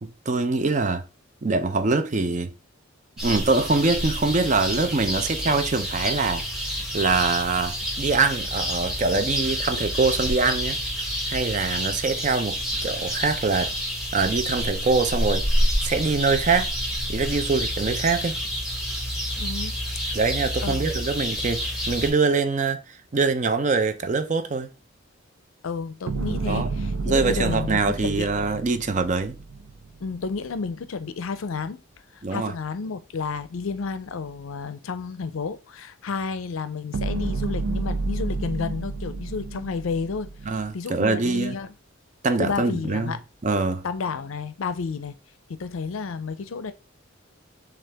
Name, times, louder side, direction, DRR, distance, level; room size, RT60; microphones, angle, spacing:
voice 1, 0.0-1.1 1.4-2.5 3.2-10.8 11.3-13.7 14.1-16.7 17.1-18.4 20.1-24.7 26.5-26.7 27.0-29.4 32.2-32.5 40.5-41.6 42.2-43.2 43.4-43.8, right 4 dB, 35° right, 0.5 m, -24 dB
sound 1, 3.2-22.1, equal, 5° right, 1.1 m, -28 dB
voice 2, 19.4-19.8 20.6-21.0 25.6-28.3 30.0-31.8 32.1-40.3 40.7-41.7 42.4-43.2 43.8-45.2 45.5-46.7, left 4 dB, 75° left, 0.5 m, -31 dB
sound 2, 26.1-30.4 36.9-40.7, right 3 dB, 90° right, 0.6 m, -30 dB
6.3 x 2.4 x 3.4 m
head